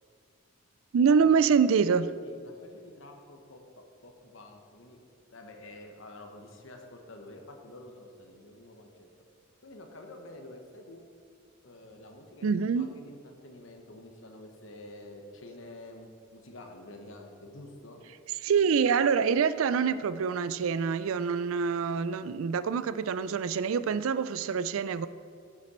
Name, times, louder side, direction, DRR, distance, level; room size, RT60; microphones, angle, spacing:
voice 1, 0.9-2.1 12.4-12.9 18.4-25.1, right 6 dB, 70° right, 0.4 m, -25 dB
voice 2, 2.2-5.0 5.3-9.1 9.6-11.0 11.6-18.0, left 1 dB, 65° left, 1.1 m, -48 dB
10.0 x 7.4 x 4.3 m
head